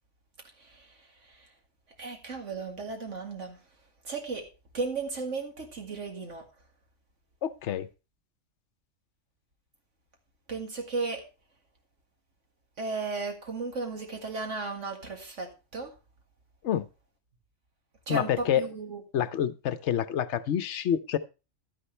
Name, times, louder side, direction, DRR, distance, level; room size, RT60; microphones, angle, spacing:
voice 1, 2.0-3.6 4.0-4.5 4.7-6.4 10.5-11.2 12.8-15.9 18.1-19.0, right 3 dB, 65° right, 4 dB, 2.3 m, -35 dB
voice 2, 7.4-7.9 16.6-16.9 18.1-18.6 19.1-21.2, left 9 dB, 65° left, 14 dB, 1.0 m, -27 dB
11.5 x 9.8 x 3.2 m, 0.30 s
omnidirectional pair, 1.4 m